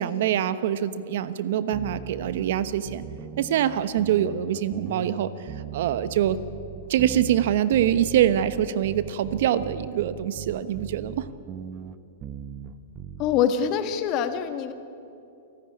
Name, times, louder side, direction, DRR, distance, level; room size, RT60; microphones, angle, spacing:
voice 1, 0.0-3.0 3.4-6.4 6.9-11.3, right 10 dB, 65° right, 13 dB, 1.0 m, -24 dB
sound 1, 1.7-13.5, right 10 dB, 30° right, 1.0 m, -39 dB
voice 2, 13.2-14.7, left 8 dB, 40° left, 9 dB, 1.6 m, -24 dB
28.5 x 13.0 x 9.9 m, 2.7 s
hypercardioid pair, 130°, 0 cm